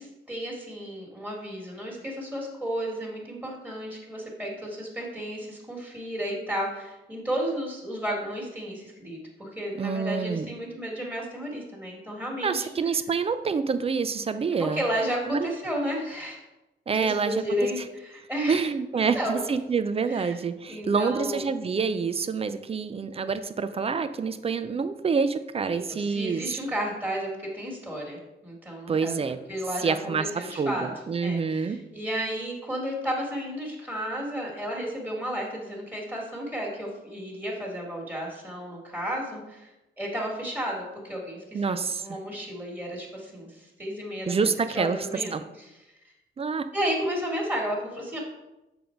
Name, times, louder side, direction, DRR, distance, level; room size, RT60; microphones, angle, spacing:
voice 1, 0.0-12.7 14.7-16.4 16.9-18.6 18.9-19.4 20.1-20.4 20.7-21.5 25.7-29.2 29.5-30.9 31.2-39.7 40.0-45.8 46.7-48.2, equal, 10° right, -3 dB, 1.8 m, -33 dB
voice 2, 9.8-10.5 12.4-14.8 15.3-15.5 16.9-17.3 18.5-26.6 28.9-29.4 29.8-31.8 41.5-42.0 44.3-45.1 45.3-45.4 46.4-46.7, right 5 dB, 30° right, 11 dB, 0.4 m, -27 dB
6.9 x 4.0 x 4.5 m, 0.98 s
cardioid pair, 115°, 19 cm